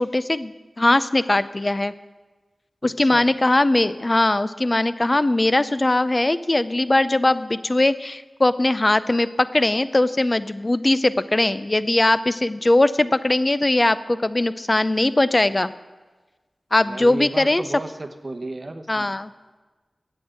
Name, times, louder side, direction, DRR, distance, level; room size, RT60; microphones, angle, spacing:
voice 1, 0.0-1.9 2.8-15.7 16.7-17.6 18.9-19.3, left 2 dB, 30° left, 14 dB, 0.4 m, -20 dB
voice 2, 2.8-3.3 16.8-19.1, right 2 dB, 40° right, 6 dB, 0.9 m, -34 dB
8.6 x 7.8 x 8.8 m, 1.2 s
wide cardioid pair, 85°, 0 cm